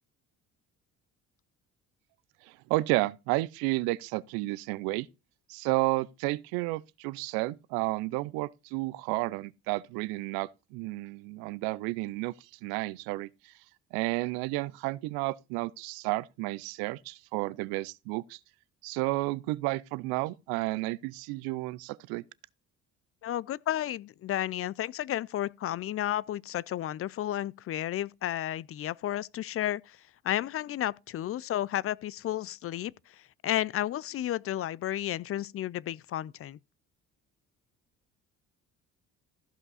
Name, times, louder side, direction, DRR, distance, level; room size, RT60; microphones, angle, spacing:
voice 1, 2.4-5.1 5.5-13.5 13.9-18.4 18.8-22.2, right 21 dB, 85° right, 0.5 m, -32 dB
voice 2, 23.2-30.0 30.2-36.6, left 12 dB, 40° left, 0.4 m, -32 dB
14.5 x 5.4 x 4.1 m
supercardioid pair, 70°, 35 cm